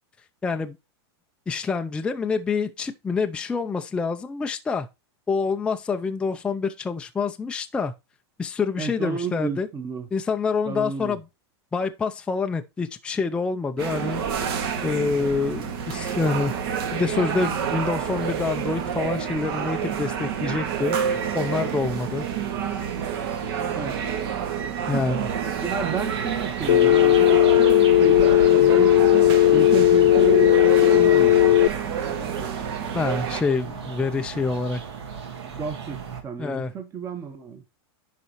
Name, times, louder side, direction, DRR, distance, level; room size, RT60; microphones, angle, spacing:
voice 1, 0.4-0.8 1.5-4.9 5.3-7.9 8.4-9.7 10.1-11.2 11.7-14.2 14.8-16.5 16.9-22.3 24.9-25.3 32.9-34.8 36.4-36.7, left 4 dB, 5° left, 0.5 m, -26 dB
voice 2, 8.8-10.1 10.6-11.2 23.7-24.0 24.9-25.0 25.6-27.4 27.9-29.0 29.5-31.5 35.4-37.6, right 6 dB, 20° right, 1.2 m, -31 dB
sound 1, 13.8-33.4, right 8 dB, 60° right, 1.9 m, -28 dB
sound 2, 25.6-36.2, right 6 dB, 80° right, 2.7 m, -37 dB
Telephone, 26.7-31.7, left 14 dB, 90° left, 0.4 m, -16 dB
10.5 x 4.1 x 3.0 m
supercardioid pair, 150°, 14 cm